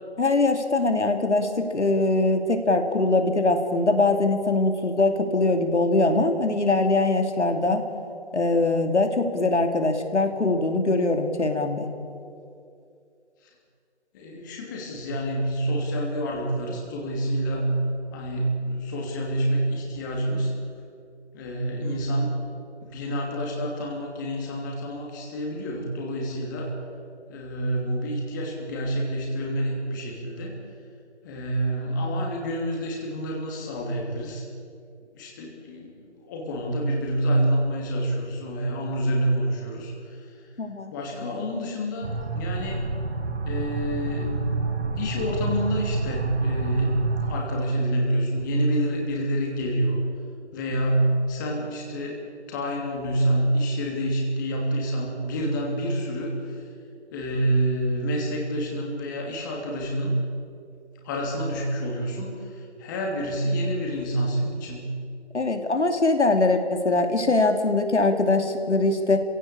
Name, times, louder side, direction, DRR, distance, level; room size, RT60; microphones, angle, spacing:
voice 1, 0.2-7.8 8.3-11.9 40.6-40.9 65.3-69.2, left 2 dB, 85° left, 6 dB, 2.7 m, -22 dB
voice 2, 14.1-17.8 18.1-20.5 21.3-22.3 22.8-26.8 27.3-30.5 31.2-34.4 35.1-40.5 40.9-42.9 43.4-44.7 45.0-47.0 47.2-50.0 50.5-52.2 52.5-56.6 57.1-60.2 61.0-64.9, right 1 dB, 15° left, -1 dB, 2.9 m, -27 dB
sound 1, 42.0-47.4, right 3 dB, 75° right, 2.2 m, -28 dB
26.5 x 16.5 x 8.7 m, 2.5 s
figure-of-eight pair, 165°, 34 cm